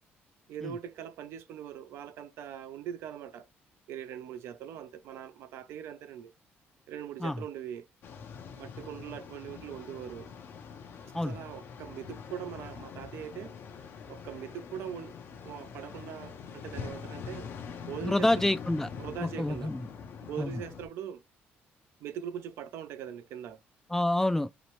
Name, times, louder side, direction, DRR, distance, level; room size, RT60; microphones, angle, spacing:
voice 1, 0.5-3.5 3.9-6.3 6.9-7.8 8.6-10.3 11.0-13.5 14.1-15.2 15.4-17.5 17.8-18.5 19.0-19.7 20.2-21.2 22.0-23.6, right 9 dB, 75° right, 0.5 m, -41 dB
sound 1, 8.0-20.9, left 6 dB, 60° left, 0.6 m, -44 dB
voice 2, 18.0-18.9 19.2-19.9 20.4-20.6 23.9-24.5, left 1 dB, 10° left, 0.3 m, -28 dB
2.9 x 2.0 x 2.9 m
cardioid pair, 105°, 4 cm